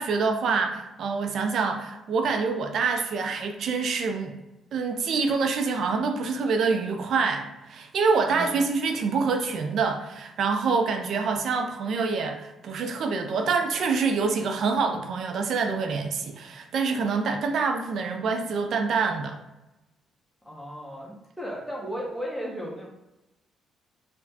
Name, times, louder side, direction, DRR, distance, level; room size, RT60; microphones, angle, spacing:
voice 1, 0.0-4.4 4.7-19.4, right 4 dB, 60° right, 5 dB, 0.5 m, -26 dB
voice 2, 8.2-8.6 20.4-22.9, equal, 5° left, -4 dB, 1.1 m, -35 dB
4.8 x 2.2 x 2.8 m, 0.97 s
hypercardioid pair, 45°, 0 cm